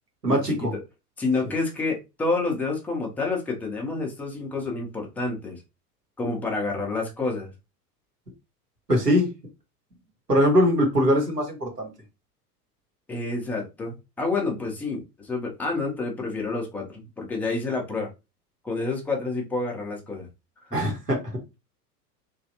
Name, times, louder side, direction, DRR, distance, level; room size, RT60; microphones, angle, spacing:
voice 1, 0.2-0.7 8.9-9.3 10.3-11.9 20.7-21.2, equal, 90° right, 1.3 m, -21 dB
voice 2, 1.2-5.6 6.2-7.5 13.1-18.1 18.6-20.3 20.7-20.8, left 3 dB, 5° left, 0.3 m, -29 dB
3.1 x 2.6 x 2.7 m
figure-of-eight pair, 85°, 47 cm